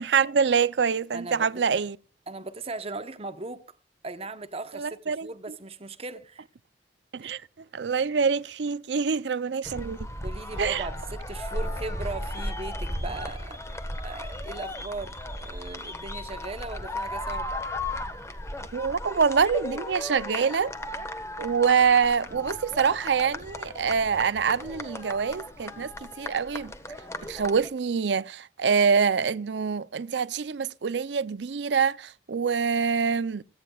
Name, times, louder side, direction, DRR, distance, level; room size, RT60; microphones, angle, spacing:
voice 1, 0.0-2.0 4.7-5.3 7.1-7.4 7.7-10.1 10.6-10.8 18.7-20.7 21.4-25.9 26.2-26.7 27.2-33.4, right 6 dB, 80° right, 0.5 m, -25 dB
voice 2, 1.1-1.8 2.3-3.6 4.0-6.4 7.2-7.3 10.2-17.5, right 3 dB, 35° right, 0.9 m, -38 dB
Thunder, 9.6-26.7 27.1-27.2, left 1 dB, 55° left, 8.0 m, -56 dB
sound 1, 9.6-27.7, left 1 dB, 15° left, 1.3 m, -36 dB
28.0 x 9.7 x 2.3 m
head